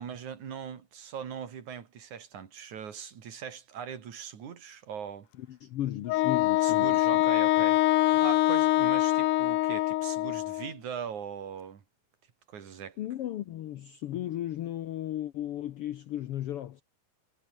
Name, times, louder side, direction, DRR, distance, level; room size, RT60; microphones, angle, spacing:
voice 1, 0.0-5.3 6.6-11.8 12.5-13.0, right 8 dB, 70° right, 3.9 m, -40 dB
voice 2, 5.4-7.2 7.6-7.7 13.0-16.8, left 12 dB, 70° left, 1.4 m, -35 dB
Wind instrument woodwind instrument, 6.1-10.7, left 17 dB, 85° left, 2.3 m, -24 dB
omnidirectional pair, 3.6 m